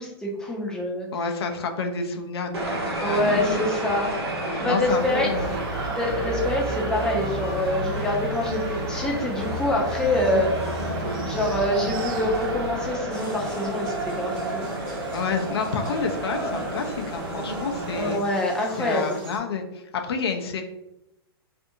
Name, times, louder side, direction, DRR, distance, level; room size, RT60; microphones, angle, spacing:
voice 1, 0.0-1.1 3.0-4.1 4.6-5.3 5.9-10.5 11.2-14.7 17.9-19.2, left 1 dB, 5° left, -2 dB, 0.5 m, -26 dB
voice 2, 1.1-3.6 4.4-5.6 15.1-18.2 18.8-20.6, left 5 dB, 75° left, 4 dB, 0.5 m, -29 dB
sound 1, 2.5-18.2, right 2 dB, 85° right, 0.8 m, -30 dB
sound 2, 4.8-13.0, right 1 dB, 55° right, 0.4 m, -35 dB
sound 3, 13.1-19.4, right 1 dB, 35° right, 1.1 m, -42 dB
2.5 x 2.5 x 2.6 m, 0.88 s
hypercardioid pair, 130°, 13 cm